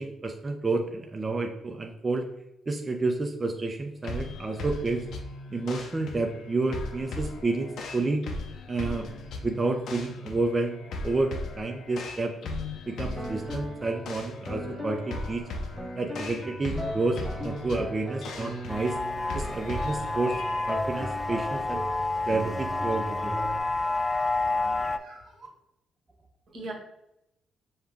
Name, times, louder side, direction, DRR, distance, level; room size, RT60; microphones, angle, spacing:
voice 1, 0.0-2.2 2.7-5.0 5.5-8.2 8.7-9.1 9.4-10.8 11.0-11.3 11.6-12.3 12.9-15.4 16.0-19.0 19.3-20.4 20.7-21.9 22.3-23.3, right 3 dB, 25° right, 3 dB, 0.5 m, -30 dB
sound 1, 4.0-20.7, left 2 dB, 70° left, 0.6 m, -38 dB
sound 2, 13.2-23.6, equal, 5° right, 0.9 m, -38 dB
sound 3, 18.7-25.0, left 3 dB, 25° left, 0.3 m, -30 dB
voice 2, 24.9-25.5 26.5-26.7, right 2 dB, 55° right, -2 dB, 1.6 m, -41 dB
5.5 x 2.2 x 3.5 m, 0.83 s
cardioid pair, 90°, 0 cm